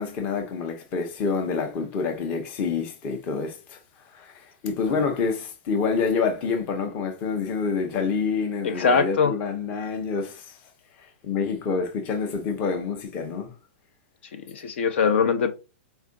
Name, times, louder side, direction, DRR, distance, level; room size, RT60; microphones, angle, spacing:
voice 1, 0.0-3.8 4.1-10.6 11.0-13.5, left 5 dB, 20° left, 0.7 m, -27 dB
voice 2, 8.6-9.3 14.5-15.5, left 6 dB, 60° left, 0.6 m, -22 dB
4.4 x 2.4 x 3.7 m
supercardioid pair, 175°, 7 cm